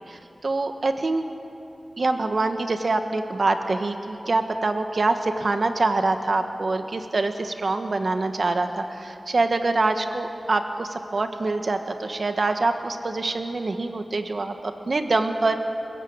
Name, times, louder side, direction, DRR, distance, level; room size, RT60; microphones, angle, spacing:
voice 1, 0.1-1.2 2.0-15.6, right 3 dB, 55° right, 7 dB, 1.4 m, -25 dB
29.5 x 15.0 x 8.7 m, 2.9 s
wide cardioid pair, 80°, 0 cm